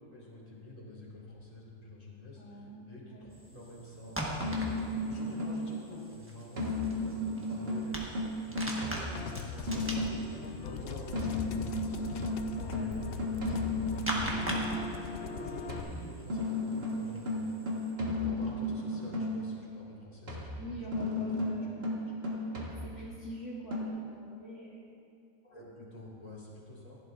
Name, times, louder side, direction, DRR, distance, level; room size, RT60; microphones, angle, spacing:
voice 1, 0.1-4.2 5.0-8.1 8.5-12.3 12.7-13.6 14.0-17.6 18.2-21.6 25.4-27.0, left 1 dB, 25° left, -5 dB, 2.2 m, -48 dB
voice 2, 2.3-3.3 12.6-13.0 20.6-21.9 22.5-25.0, equal, 50° left, -6 dB, 1.4 m, -44 dB
sound 1, 3.3-17.9, equal, 10° right, 1.0 m, -42 dB
sound 2, 4.4-5.8 6.6-10.4 11.1-14.8 15.7-19.5 20.3-23.2 23.7-23.9, left 1 dB, 40° right, 1.6 m, -34 dB
sound 3, 9.2-15.8, left 6 dB, 75° left, 0.5 m, -40 dB
15.5 x 11.0 x 2.5 m, 2.4 s
omnidirectional pair, 1.6 m